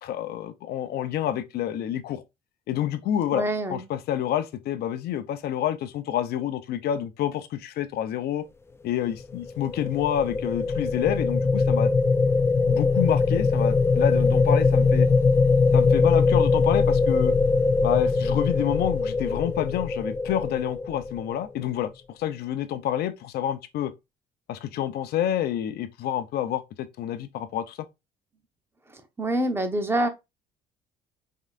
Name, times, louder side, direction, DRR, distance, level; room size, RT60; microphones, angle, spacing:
voice 1, 0.0-2.2 2.7-8.5 8.8-11.9 12.7-15.1 15.7-17.3 17.8-23.9 24.5-27.9, left 11 dB, 70° left, 0.7 m, -28 dB
voice 2, 3.3-3.8 28.9-30.1, right 1 dB, 15° right, 1.1 m, -26 dB
sound 1, 9.3-21.5, left 4 dB, 15° left, 0.4 m, -22 dB
5.4 x 3.8 x 2.5 m
cardioid pair, 110°, 17 cm